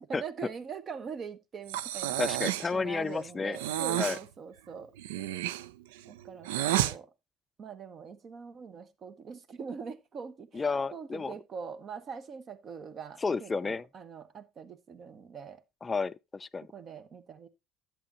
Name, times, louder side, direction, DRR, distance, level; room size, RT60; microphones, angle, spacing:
voice 1, 0.1-2.2 2.7-4.9 6.1-7.1 7.6-10.6 10.9-15.6 16.7-17.5, right 6 dB, 45° right, 1.2 m, -43 dB
Breathing, 1.7-2.7 3.5-4.2 5.0-6.9, right 14 dB, 80° right, 0.4 m, -31 dB
voice 2, 2.2-3.6 3.9-4.2 10.5-11.3 13.2-13.8 15.8-16.7, left 4 dB, 25° left, 0.4 m, -31 dB
11.0 x 8.0 x 2.9 m
hypercardioid pair, 65°, 0 cm